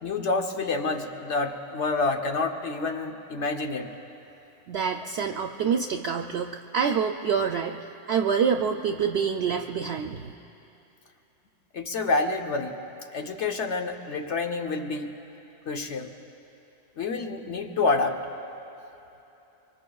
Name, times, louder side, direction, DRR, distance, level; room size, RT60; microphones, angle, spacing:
voice 1, 0.0-3.9 11.7-12.8 13.1-15.1 15.7-16.1 17.0-18.2, left 3 dB, 65° left, 4 dB, 1.2 m, -28 dB
voice 2, 4.7-7.8 8.1-10.3, right 6 dB, 65° right, 4 dB, 0.7 m, -26 dB
25.0 x 24.5 x 2.3 m, 2.9 s
omnidirectional pair, 1.3 m